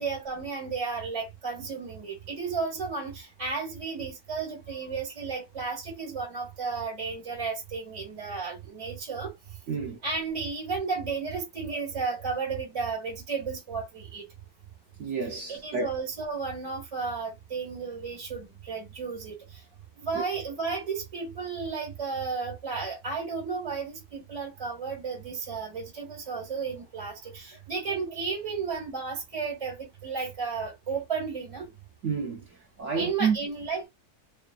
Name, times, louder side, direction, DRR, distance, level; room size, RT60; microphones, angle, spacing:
voice 1, 0.0-9.3 10.0-14.2 15.5-19.6 20.0-31.7 32.9-33.9, right 5 dB, 20° right, 1.3 m, -33 dB
voice 2, 9.7-10.0 15.0-15.9 20.1-20.2 32.0-32.4 32.8-33.4, right 5 dB, 75° right, 0.6 m, -29 dB
3.0 x 2.3 x 2.3 m
omnidirectional pair, 1.8 m